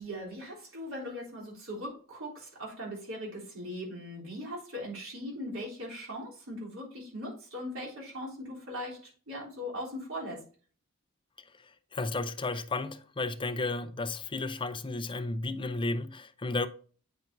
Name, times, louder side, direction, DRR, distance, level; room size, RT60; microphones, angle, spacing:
voice 1, 0.0-10.4, equal, 85° right, 3.5 m, -40 dB
voice 2, 11.9-16.7, left 3 dB, 25° left, 0.6 m, -33 dB
9.2 x 5.8 x 2.6 m
head